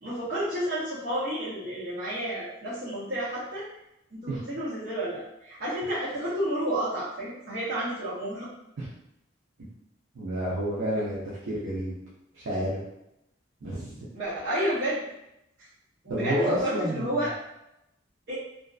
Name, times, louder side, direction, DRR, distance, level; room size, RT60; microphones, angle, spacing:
voice 1, 0.0-3.7 4.1-8.5 14.1-15.0 16.0-17.4 18.3-18.4, right 1 dB, 55° right, -12 dB, 0.8 m, -31 dB
voice 2, 10.1-12.0 12.3-12.8 13.6-14.0 16.1-17.1, equal, 85° right, -8 dB, 0.6 m, -30 dB
2.5 x 2.4 x 2.3 m, 0.85 s
head